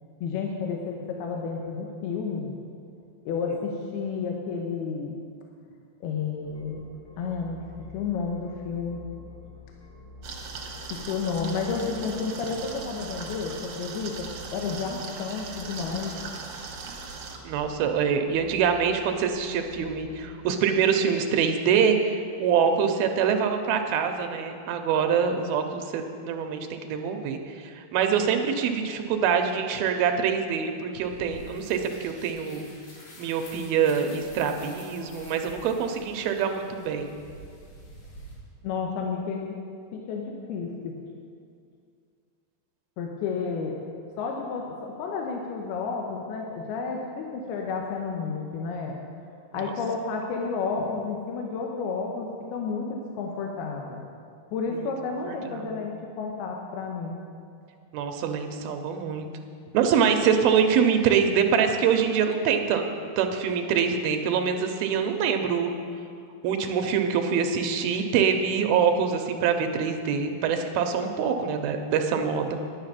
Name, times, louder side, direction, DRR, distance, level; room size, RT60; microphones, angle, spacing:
voice 1, 0.2-2.5 3.3-5.2 6.0-7.6 7.9-9.0 10.9-12.6 12.9-14.1 14.5-16.1 38.6-39.5 39.9-40.2 40.5-40.9 43.0-43.7 44.2-49.0 49.5-54.0 54.5-57.2, left 5 dB, 85° left, 1 dB, 2.8 m, -31 dB
sound 1, 6.4-20.3, left 2 dB, 35° left, 2.4 m, -48 dB
sound 2, 10.2-17.4, right 5 dB, 65° right, 1.6 m, -39 dB
voice 2, 17.5-32.6 33.2-37.1 54.7-54.8 55.3-55.8 57.9-59.3 59.7-62.8 63.2-65.7 66.4-72.6, right 7 dB, 85° right, 5 dB, 2.5 m, -25 dB
sound 3, 30.9-38.3, equal, 55° left, 3.7 m, -48 dB
10.0 x 9.8 x 5.7 m, 2.3 s
omnidirectional pair, 4.4 m